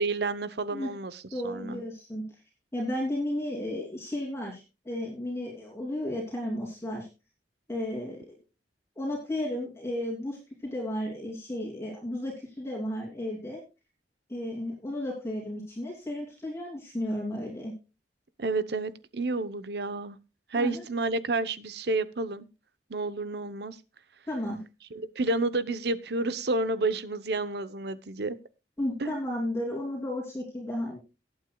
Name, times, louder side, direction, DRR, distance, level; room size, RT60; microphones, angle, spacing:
voice 1, 0.0-1.8 18.4-20.2 20.5-22.5 22.9-23.8 24.9-28.4 29.0-29.1, right 3 dB, 65° right, 14 dB, 0.8 m, -30 dB
voice 2, 1.3-2.2 2.7-7.1 7.7-8.4 8.9-13.6 14.3-17.7 20.5-20.8 24.3-24.6 28.8-31.0, left 1 dB, 15° left, -3 dB, 3.0 m, -33 dB
19.0 x 8.8 x 2.3 m, 0.29 s
head